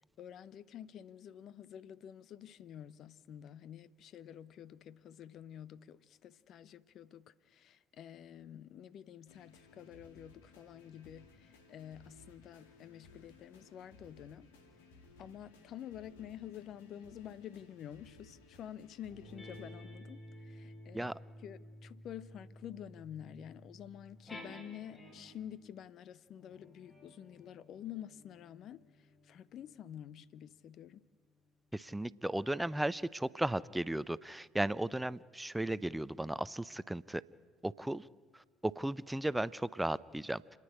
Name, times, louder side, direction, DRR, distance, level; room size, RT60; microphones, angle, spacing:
voice 1, 0.2-14.5 15.2-21.1 21.4-31.0, left 10 dB, 55° left, 0.7 m, -49 dB
sound 1, 9.3-19.7, left 3 dB, 80° left, 2.4 m, -60 dB
sound 2, 19.1-25.5 26.3-31.2, equal, 35° left, 7.4 m, -54 dB
voice 2, 31.7-37.2 37.6-38.1 38.3-40.4, right 1 dB, 10° right, 0.6 m, -35 dB
29.5 x 9.9 x 10.0 m
hypercardioid pair, 55°, 0 cm